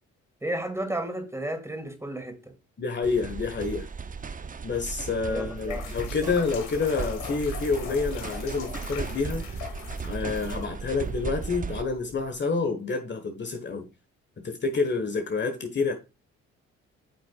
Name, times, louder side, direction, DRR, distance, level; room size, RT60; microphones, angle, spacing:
voice 1, 0.4-2.4 5.3-5.9 6.2-6.3, right 1 dB, 10° right, 2.6 m, -33 dB
voice 2, 2.8-3.9 4.6-9.4 10.0-13.9 14.4-15.9, left 4 dB, 35° left, 1.4 m, -28 dB
sound 1, 3.0-11.8, right 5 dB, 25° right, 0.7 m, -36 dB
sound 2, 5.4-12.4, left 8 dB, 85° left, 1.4 m, -42 dB
8.8 x 6.1 x 2.4 m
supercardioid pair, 60°, 30 cm